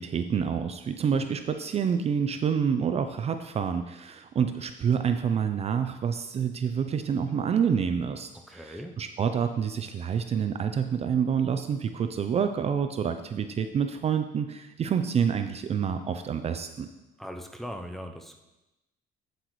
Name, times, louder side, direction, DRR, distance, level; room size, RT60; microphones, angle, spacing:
voice 1, 0.0-16.9, right 7 dB, 40° right, 8 dB, 0.5 m, -28 dB
voice 2, 8.5-9.0 17.2-18.4, equal, ahead, 4 dB, 0.7 m, -39 dB
8.3 x 7.9 x 3.1 m, 0.99 s
cardioid pair, 110°, 17 cm